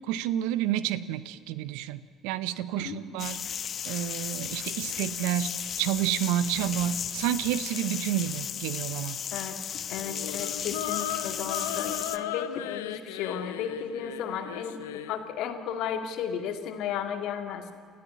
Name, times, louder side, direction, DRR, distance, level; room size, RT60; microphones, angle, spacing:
voice 1, 0.1-3.4 3.9-9.2, right 12 dB, 75° right, 16 dB, 0.8 m, -30 dB
voice 2, 2.8-3.3 9.3-9.6 9.9-14.8 15.1-17.6, left 8 dB, 65° left, 6 dB, 2.1 m, -34 dB
sound 1, 3.2-12.2, left 8 dB, 50° left, 1.1 m, -35 dB
sound 2, 10.0-15.2, left 12 dB, 85° left, 0.8 m, -36 dB
28.5 x 14.0 x 8.5 m, 2.4 s
hypercardioid pair, 60°, 0 cm